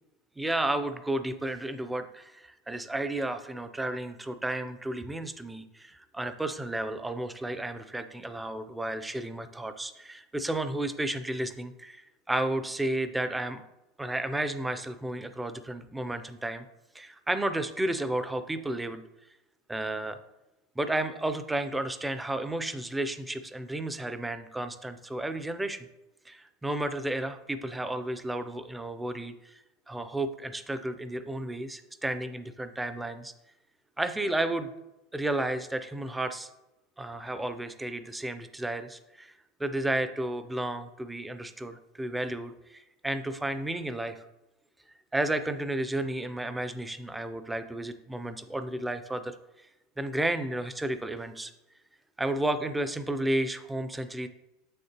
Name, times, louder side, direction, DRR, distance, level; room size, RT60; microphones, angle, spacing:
voice 1, 0.4-13.6 14.0-16.6 16.9-19.0 19.7-20.2 20.8-25.9 26.3-29.6 29.9-33.3 34.0-34.7 35.1-36.5 37.0-39.3 39.6-44.2 45.1-49.3 50.0-51.5 52.2-54.3, right 1 dB, 5° right, 10 dB, 0.4 m, -32 dB
6.9 x 6.5 x 2.9 m, 0.95 s
supercardioid pair, 140°, 0 cm